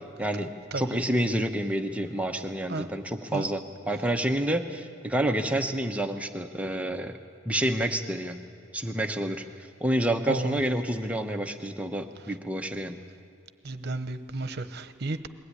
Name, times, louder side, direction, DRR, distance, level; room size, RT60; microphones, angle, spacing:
voice 1, 0.2-7.1 7.5-8.4 8.7-9.4 9.8-13.0, right 1 dB, 5° right, 4 dB, 1.0 m, -28 dB
voice 2, 10.3-10.6 13.6-15.3, right 2 dB, 55° right, 10 dB, 1.0 m, -32 dB
21.5 x 16.0 x 9.8 m, 2.4 s
head